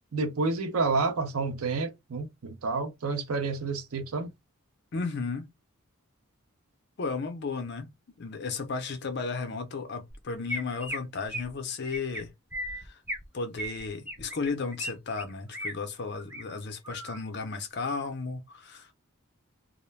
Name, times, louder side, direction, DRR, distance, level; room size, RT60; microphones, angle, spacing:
voice 1, 0.1-4.3, right 3 dB, 85° right, 0.6 m, -29 dB
voice 2, 4.9-5.5 7.0-7.9 8.2-12.3 12.8-13.0 13.3-18.9, left 4 dB, 50° left, 0.5 m, -34 dB
Chirp tweet, 10.1-10.2 10.5-11.0 11.3-11.5 11.8-12.2 12.5-13.2 13.6-14.9 15.2-15.7 16.1-16.4 16.8-17.2, equal, 10° right, 0.4 m, -36 dB
2.4 x 2.1 x 3.1 m
head